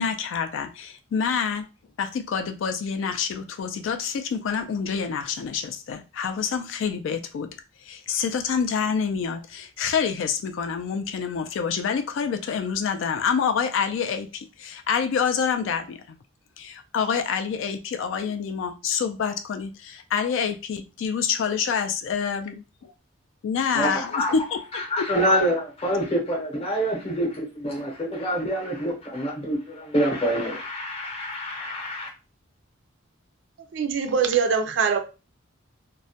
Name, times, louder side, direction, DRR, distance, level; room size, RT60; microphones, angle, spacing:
voice 1, 0.0-1.7 2.0-7.5 7.8-16.2 16.6-22.6 23.4-25.1, left 6 dB, 65° left, 0.3 m, -27 dB
voice 2, 23.7-24.3 24.7-32.1, equal, 30° left, 0.7 m, -26 dB
voice 3, 33.7-35.0, right 6 dB, 60° right, 0.4 m, -22 dB
2.2 x 2.1 x 2.7 m
head